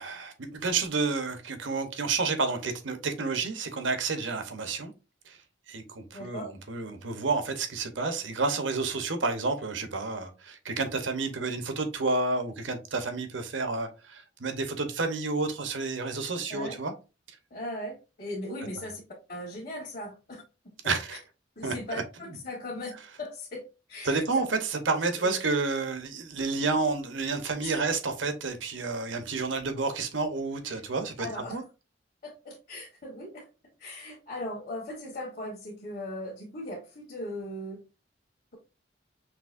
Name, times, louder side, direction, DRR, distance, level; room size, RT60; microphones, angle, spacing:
voice 1, 0.0-4.9 5.3-5.4 5.7-16.9 18.7-18.9 20.8-21.2 21.6-22.3 24.0-31.6, right 3 dB, 85° right, 0.9 m, -30 dB
voice 2, 6.1-6.5 16.5-16.8 17.5-19.0 19.3-20.4 20.8-20.9 21.6-22.9 23.2-23.6 23.9-24.2 25.2-25.4 27.6-27.8 30.6-30.8 31.2-31.6 32.2-33.5 33.8-37.8, left 1 dB, 45° left, 1.4 m, -38 dB
6.0 x 2.8 x 2.5 m
head